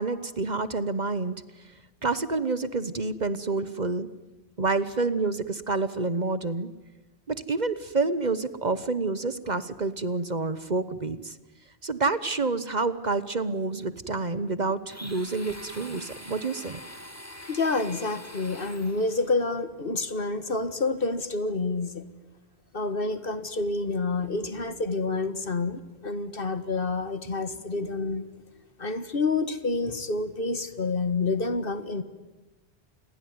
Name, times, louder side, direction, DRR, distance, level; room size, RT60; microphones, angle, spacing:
voice 1, 0.0-1.3 2.0-4.1 4.6-6.7 7.3-11.3 11.8-16.8, right 3 dB, 40° right, 14 dB, 1.1 m, -28 dB
Domestic sounds home sounds, 14.9-19.3, left 1 dB, 15° left, 2.4 m, -44 dB
voice 2, 17.5-22.0 22.7-28.3 28.8-32.0, left 3 dB, 55° left, 12 dB, 1.8 m, -28 dB
28.5 x 21.0 x 9.5 m, 1.1 s
omnidirectional pair, 1.1 m